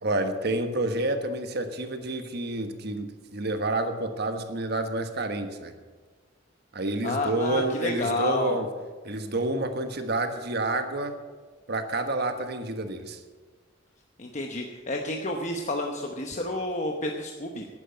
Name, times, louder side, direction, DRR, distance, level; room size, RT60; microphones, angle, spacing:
voice 1, 0.0-5.7 6.7-8.7 9.0-11.1 11.7-13.2, right 2 dB, 60° right, 7 dB, 1.4 m, -29 dB
voice 2, 7.0-8.6 14.2-17.7, left 2 dB, 40° left, 2 dB, 1.0 m, -30 dB
11.5 x 9.9 x 7.9 m, 1.4 s
head